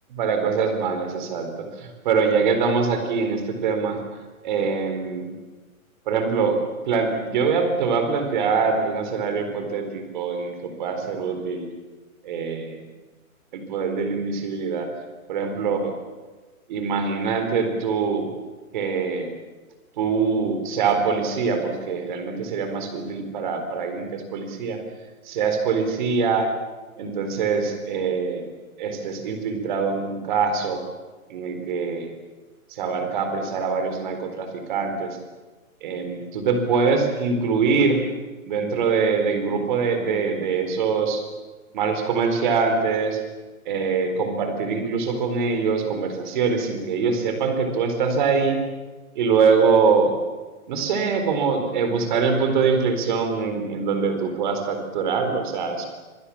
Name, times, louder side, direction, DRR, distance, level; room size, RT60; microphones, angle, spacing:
voice 1, 0.1-4.0 4.4-5.3 6.1-6.6 6.8-11.7 12.2-12.8 13.5-14.9 15.3-15.9 16.7-18.3 18.7-19.3 20.0-24.8 25.2-26.5 27.0-28.5 28.8-30.8 31.3-32.1 32.7-35.2 35.8-38.0 38.4-41.2 41.7-43.2 43.7-48.6 49.1-50.2 50.7-55.9, right 5 dB, 35° right, 6 dB, 4.2 m, -23 dB
27.0 x 23.0 x 7.3 m, 1.3 s
hypercardioid pair, 170°, 43 cm